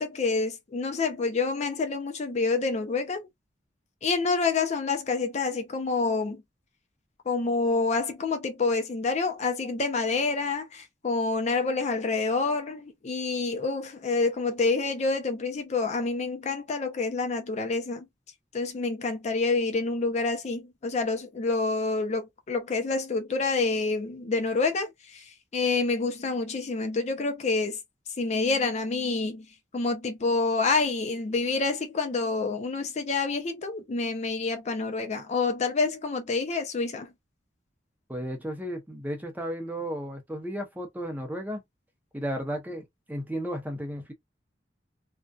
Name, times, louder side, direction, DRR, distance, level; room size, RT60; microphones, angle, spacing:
voice 1, 0.0-3.3 4.0-6.4 7.3-18.1 18.5-27.8 28.2-29.5 29.7-37.1, left 3 dB, 40° left, 0.4 m, -28 dB
voice 2, 38.1-41.6 42.1-44.1, equal, 10° right, 0.6 m, -34 dB
2.5 x 2.2 x 2.2 m
head